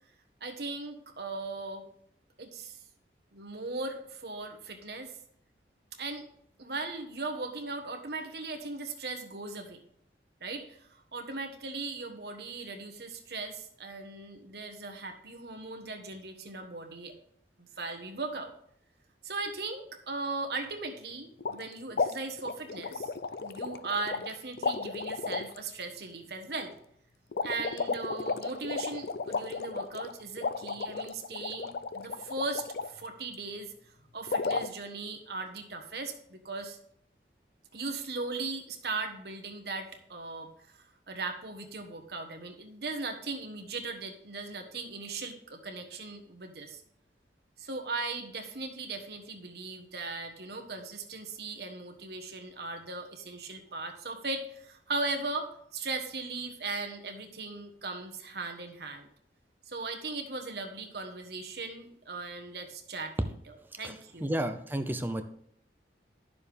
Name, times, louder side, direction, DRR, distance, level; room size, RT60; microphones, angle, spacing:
voice 1, 0.4-1.9 2.4-2.8 3.3-5.1 6.0-6.3 6.6-9.8 10.4-17.1 17.6-18.5 19.2-23.1 23.4-26.7 27.4-33.7 34.1-36.8 37.7-40.5 41.1-46.8 47.6-59.1 59.7-63.1 63.4-64.3, right 3 dB, 65° right, 4 dB, 1.3 m, -38 dB
sound 1, 21.4-21.6 21.9-24.3 24.6-25.6 27.3-32.9 34.3-34.7, left 4 dB, 60° left, 0.4 m, -33 dB
voice 2, 64.2-65.2, right 1 dB, 10° right, 8 dB, 0.6 m, -31 dB
10.5 x 6.8 x 3.5 m, 0.68 s
head